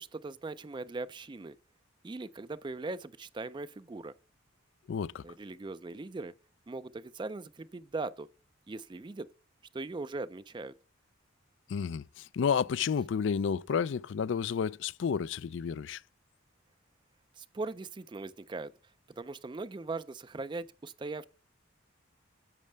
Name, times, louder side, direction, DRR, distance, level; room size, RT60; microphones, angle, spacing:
voice 1, 0.0-1.6 2.0-4.1 5.2-6.3 6.7-8.3 8.7-9.3 9.7-10.7 17.4-18.7 19.2-21.2, right 3 dB, 20° right, 0.3 m, -40 dB
voice 2, 4.9-5.2 11.7-16.0, left 6 dB, 60° left, 0.3 m, -31 dB
10.5 x 7.5 x 3.3 m
head